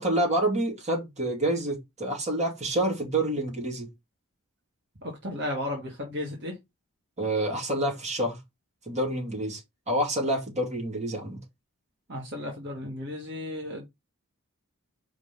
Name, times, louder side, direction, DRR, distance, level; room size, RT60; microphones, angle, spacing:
voice 1, 0.0-3.9 7.2-8.4 8.9-9.6 9.9-11.4, right 1 dB, 30° right, 2.6 m, -28 dB
voice 2, 5.0-6.5 12.1-13.9, left 1 dB, 50° right, 2.0 m, -34 dB
5.0 x 4.0 x 5.3 m
head